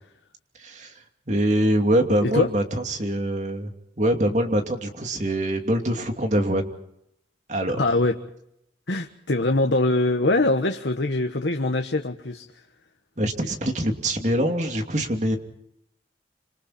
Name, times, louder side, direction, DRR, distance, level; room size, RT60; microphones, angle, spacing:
voice 1, 0.6-0.9 1.3-3.7 4.0-6.7 7.5-7.8 13.2-15.4, right 1 dB, 40° right, 4 dB, 2.8 m, -24 dB
voice 2, 7.7-8.2 8.9-12.5, left 2 dB, 80° left, 4 dB, 1.5 m, -23 dB
27.5 x 26.5 x 4.4 m, 0.77 s
head